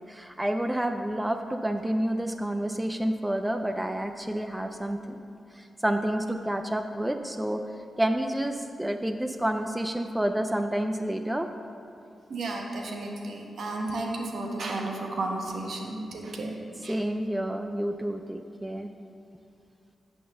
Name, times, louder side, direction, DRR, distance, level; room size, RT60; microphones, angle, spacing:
voice 1, 0.0-5.2 5.5-7.6 8.0-11.5 16.9-18.9, right 1 dB, 10° right, 6 dB, 0.4 m, -29 dB
voice 2, 12.3-17.0, right 2 dB, 70° right, 1 dB, 1.1 m, -33 dB
9.3 x 3.9 x 6.4 m, 2.5 s
cardioid pair, 60°, 0 cm